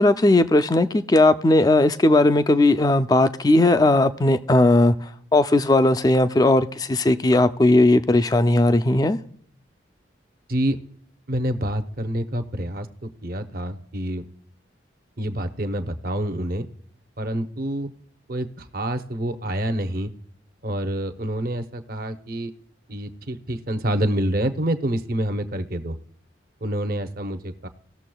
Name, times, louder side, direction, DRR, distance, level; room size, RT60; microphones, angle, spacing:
voice 1, 0.0-4.9 5.3-9.2, left 2 dB, 20° left, 11 dB, 0.4 m, -17 dB
voice 2, 11.3-14.2 15.2-16.7 17.2-17.9 18.3-20.1 20.6-22.5 22.9-26.0 26.6-27.7, right 1 dB, 50° right, 8 dB, 0.7 m, -27 dB
18.5 x 6.9 x 2.3 m, 0.66 s
head